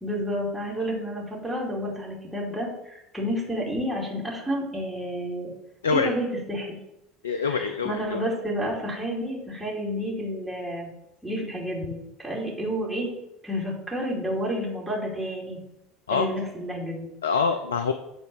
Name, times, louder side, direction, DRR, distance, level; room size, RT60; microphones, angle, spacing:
voice 1, 0.0-5.5 5.9-6.8 7.4-10.9 11.2-13.1 13.4-15.6 16.1-17.1, equal, 5° right, -5 dB, 2.7 m, -30 dB
voice 2, 7.2-8.2 16.1-16.3 17.2-17.9, left 5 dB, 75° left, 9 dB, 0.4 m, -25 dB
8.1 x 3.9 x 6.1 m, 0.85 s
figure-of-eight pair, 65°, 0 cm